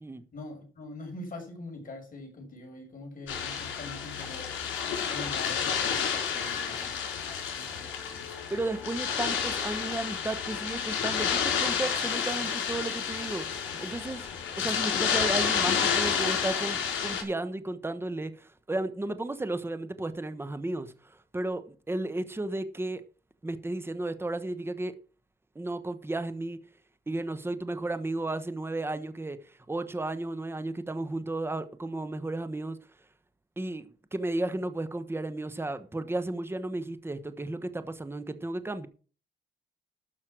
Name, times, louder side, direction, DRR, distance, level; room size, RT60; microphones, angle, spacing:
voice 1, 0.3-4.5 5.1-6.9 7.5-8.0, left 2 dB, 45° left, 6.1 m, -43 dB
sound 1, 3.3-17.2, left 7 dB, 75° left, 4.2 m, -30 dB
voice 2, 8.5-14.2 14.6-23.0 23.4-24.9 25.5-26.6 27.1-29.4 29.7-32.8 33.6-38.9, right 2 dB, 10° right, 1.1 m, -34 dB
12.5 x 6.4 x 6.2 m
cardioid pair, 90°, 20 cm